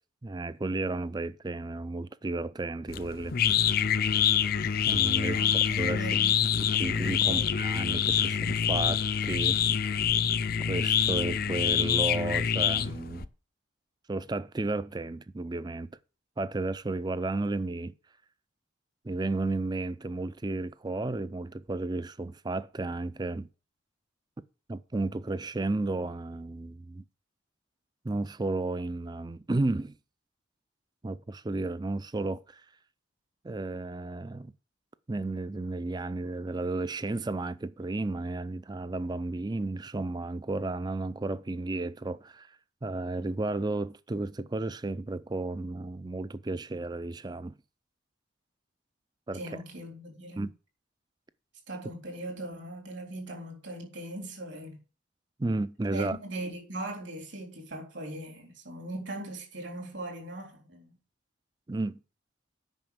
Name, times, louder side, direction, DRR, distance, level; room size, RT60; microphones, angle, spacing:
voice 1, 0.2-3.4 4.9-5.4 5.8-6.1 6.6-9.6 10.7-13.3 14.1-15.9 16.4-17.9 19.0-23.5 24.7-27.0 28.0-30.0 31.0-32.6 33.4-34.5 35.1-42.5 42.8-47.5 49.3-49.4 50.4-50.5 55.4-56.2 61.7-62.0, right 2 dB, 20° right, 0.4 m, -33 dB
sound 1, 2.9-13.3, left 8 dB, 50° left, 0.5 m, -26 dB
voice 2, 5.2-6.4 7.2-7.5 9.6-9.8 49.3-50.4 51.7-54.8 55.9-60.9, right 1 dB, 65° right, 3.6 m, -40 dB
9.2 x 5.9 x 7.1 m
head